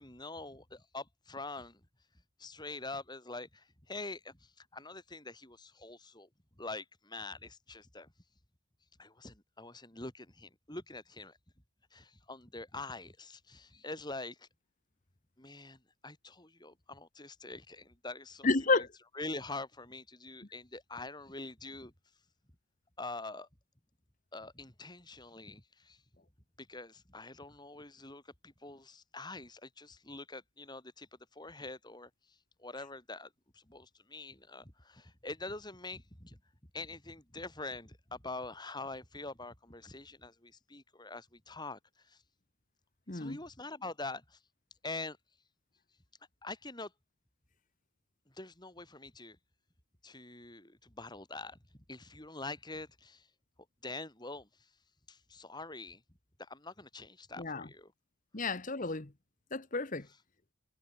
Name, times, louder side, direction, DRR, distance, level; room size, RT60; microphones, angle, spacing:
voice 1, 0.0-1.8 2.4-6.3 6.6-8.1 9.0-11.4 11.9-14.5 15.4-18.5 18.8-18.9 19.1-21.9 23.0-23.5 24.3-26.0 26.6-36.4 36.7-42.2 43.1-44.4 44.8-45.2 46.4-46.9 48.3-49.4 50.0-51.6 51.9-53.3 53.8-54.7 55.1-56.0 56.4-57.9, left 2 dB, 20° left, 3.9 m, -45 dB
voice 2, 18.4-18.9 43.1-43.4 57.4-57.7 58.3-59.1 59.5-60.1, left 3 dB, 35° left, 1.2 m, -31 dB
head